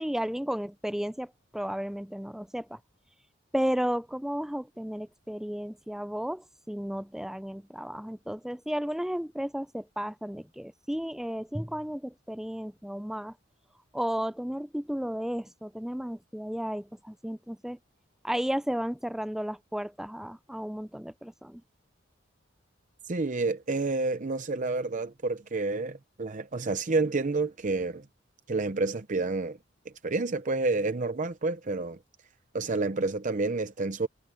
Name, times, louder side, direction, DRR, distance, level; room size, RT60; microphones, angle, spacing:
voice 1, 0.0-2.8 3.5-13.3 13.9-17.8 18.2-21.6, equal, ahead, 0.5 m, -33 dB
voice 2, 23.1-28.0 28.5-29.6 30.0-32.0 32.5-34.1, right 3 dB, 40° right, 0.7 m, -29 dB
head